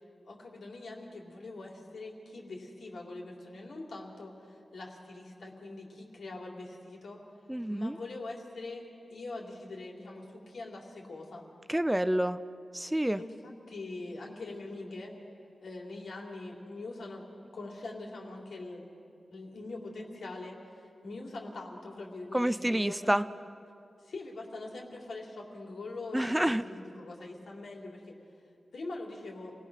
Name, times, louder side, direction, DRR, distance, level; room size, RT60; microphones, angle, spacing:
voice 1, 0.2-7.2 7.7-11.4 13.1-15.1 15.6-17.3 17.5-18.9 19.3-23.2 24.0-28.0 28.7-29.5, left 2 dB, 85° left, -1 dB, 3.5 m, -43 dB
voice 2, 7.5-8.0 11.7-12.4 12.7-13.2 22.3-23.2 26.1-26.6, right 1 dB, 10° right, 13 dB, 0.4 m, -28 dB
28.5 x 19.0 x 6.4 m, 2.5 s
wide cardioid pair, 135°, 0 cm